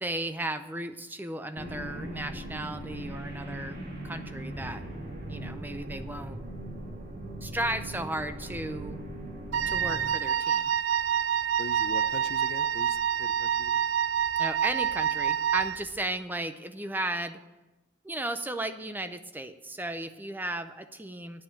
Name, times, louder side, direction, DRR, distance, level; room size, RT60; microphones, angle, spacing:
voice 1, 0.0-4.9 5.3-6.4 7.4-9.0 9.7-10.7 14.4-17.4 18.0-21.4, right 1 dB, 10° right, 9 dB, 0.6 m, -35 dB
sound 1, 1.6-10.0, right 1 dB, 55° right, 2.1 m, -39 dB
Wind instrument woodwind instrument, 9.5-15.9, right 9 dB, 70° right, 0.4 m, -27 dB
voice 2, 11.6-13.8, left 3 dB, 55° left, 13 dB, 0.5 m, -41 dB
9.5 x 7.1 x 8.7 m, 1.0 s
head